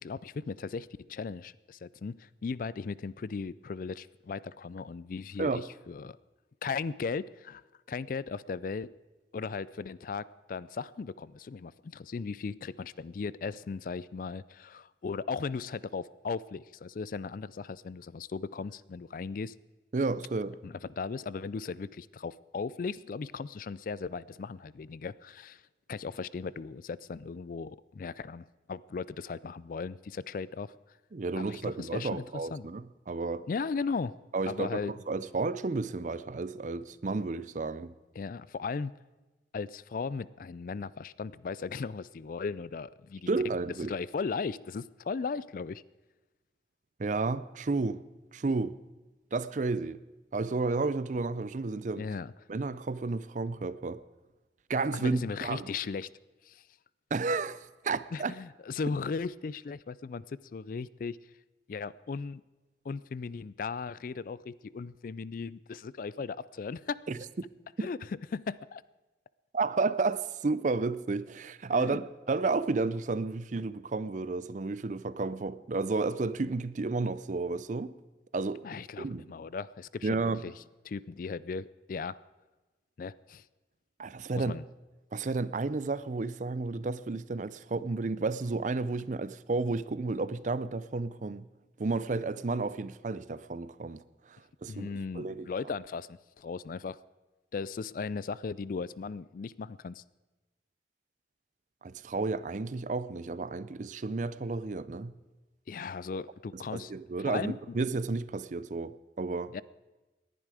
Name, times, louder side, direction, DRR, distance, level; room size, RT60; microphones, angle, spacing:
voice 1, 0.0-6.2 6.6-7.6 7.9-8.9 9.3-19.5 20.6-25.6 25.9-30.7 31.4-32.7 33.5-34.1 34.5-34.9 38.2-38.9 39.5-43.3 43.9-45.8 52.0-52.3 54.9-56.1 56.5-56.6 58.1-61.2 61.7-62.4 62.8-67.0 67.8-68.0 68.3-68.8 71.7-72.0 78.6-80.5 80.8-82.2 83.0-83.4 84.4-84.6 94.7-97.0 97.5-100.0 105.7-106.9 107.2-107.6 109.5-109.6, left 5 dB, 50° left, 0.3 m, -37 dB
voice 2, 19.9-20.6 31.1-33.5 34.3-37.9 43.3-43.9 47.0-48.0 48.3-48.8 49.3-50.0 50.3-52.1 52.5-54.0 54.7-55.7 57.1-58.3 67.1-67.2 69.5-78.0 78.3-78.6 79.0-79.3 80.0-80.5 84.0-84.6 85.1-91.5 91.8-94.0 94.3-95.5 101.8-105.1 106.5-109.6, right 3 dB, 45° right, 0.5 m, -32 dB
19.0 x 11.0 x 4.9 m
head